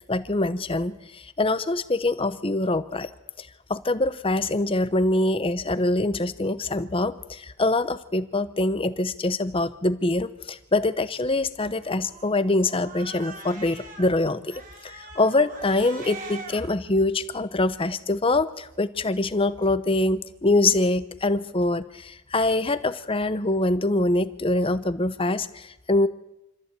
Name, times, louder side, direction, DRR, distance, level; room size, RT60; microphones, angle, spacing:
voice 1, 0.1-3.1 3.4-14.5 14.8-26.1, left 2 dB, 25° left, 13 dB, 0.9 m, -24 dB
Cat, 11.7-14.1 14.5-16.6, right 3 dB, 40° right, 3.3 m, -42 dB
26.0 x 14.5 x 8.3 m, 0.94 s
head